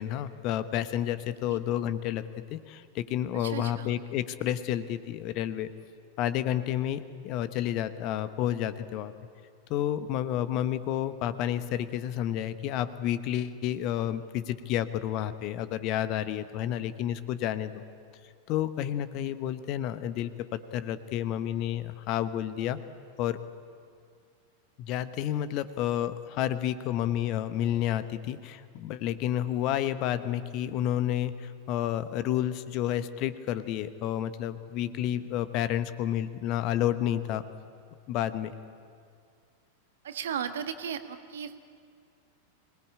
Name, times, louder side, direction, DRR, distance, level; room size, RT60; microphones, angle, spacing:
voice 1, 0.0-2.2 2.5-5.7 6.2-9.1 9.7-17.8 18.5-22.8 23.2-23.4 24.8-37.4 38.1-38.5, left 11 dB, 40° left, 13 dB, 1.1 m, -30 dB
voice 2, 3.3-3.9 40.0-41.6, right 8 dB, 60° right, 9 dB, 1.5 m, -35 dB
25.5 x 19.5 x 8.7 m, 2.3 s
figure-of-eight pair, 90°, 0 cm